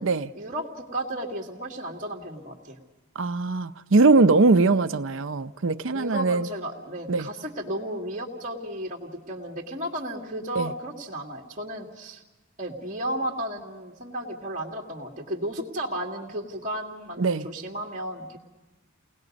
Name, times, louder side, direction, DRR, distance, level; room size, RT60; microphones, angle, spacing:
voice 1, 0.3-2.8 5.9-12.2 12.6-18.4, right 1 dB, 35° right, 2.2 m, -34 dB
voice 2, 3.2-6.5 7.1-7.3 10.6-10.7 17.2-17.5, right 3 dB, 65° right, 0.6 m, -21 dB
29.5 x 19.5 x 5.3 m
head